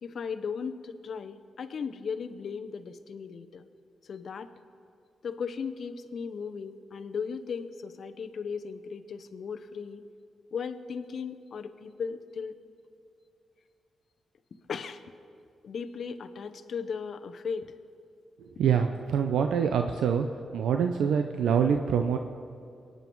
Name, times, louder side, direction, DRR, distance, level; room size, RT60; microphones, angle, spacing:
voice 1, 0.0-3.7 4.0-4.5 5.2-10.0 10.5-12.6 14.7-15.0 15.6-17.7, left 6 dB, 60° left, 9 dB, 0.8 m, -36 dB
voice 2, 18.6-20.3 20.5-22.2, right 7 dB, 90° right, 6 dB, 0.6 m, -25 dB
23.5 x 9.4 x 4.6 m, 2.4 s
cardioid pair, 105°, 0 cm